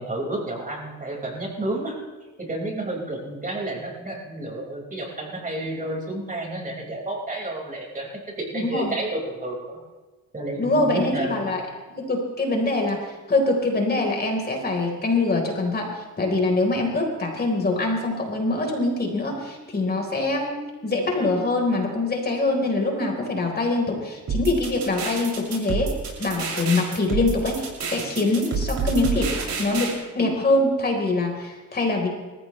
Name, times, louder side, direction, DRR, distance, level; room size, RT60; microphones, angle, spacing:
voice 1, 0.0-2.0 2.4-8.1 8.4-9.8 10.3-11.4, right 1 dB, 25° right, -2 dB, 5.2 m, -30 dB
voice 2, 8.5-8.9 10.6-11.6 12.0-29.3 29.6-32.1, left 2 dB, 30° left, 1 dB, 4.0 m, -24 dB
sound 1, 24.3-29.9, right 4 dB, 60° right, 6.4 m, -28 dB
28.5 x 15.0 x 3.2 m, 1.3 s
cardioid pair, 90°, 30 cm